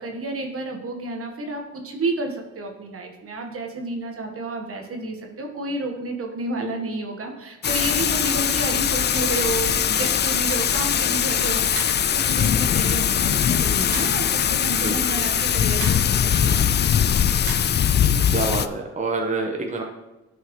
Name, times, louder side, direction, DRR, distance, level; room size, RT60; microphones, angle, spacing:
voice 1, 0.0-17.2 17.9-18.1, right 2 dB, 50° right, 3 dB, 1.4 m, -31 dB
Thunder / Rain, 7.6-18.7, left 8 dB, 35° left, 0.4 m, -21 dB
sound 1, 11.8-12.0 13.9-14.2 15.8-16.1 17.5-17.6, right 5 dB, 85° right, 1.7 m, -33 dB
voice 2, 18.0-19.8, right 3 dB, 25° right, 1 dB, 1.2 m, -27 dB
11.0 x 5.8 x 3.1 m, 1.1 s
cardioid pair, 90°, 30 cm